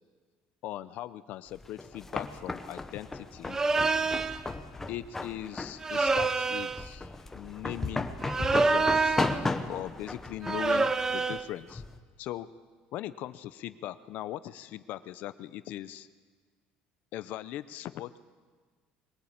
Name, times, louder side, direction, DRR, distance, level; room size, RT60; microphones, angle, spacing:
voice 1, 0.6-3.6 4.9-7.1 7.3-8.1 8.4-9.2 9.7-11.8 12.2-12.5 12.9-16.1 17.1-18.2, left 13 dB, 55° left, 14 dB, 0.7 m, -39 dB
sound 1, 1.5-12.0, left 3 dB, 10° left, 1.0 m, -36 dB
sound 2, 3.5-4.4 5.8-6.9 8.2-9.4 10.4-11.5, right 3 dB, 15° right, 0.6 m, -27 dB
22.0 x 18.5 x 8.8 m, 1.5 s
cardioid pair, 170°, 3 cm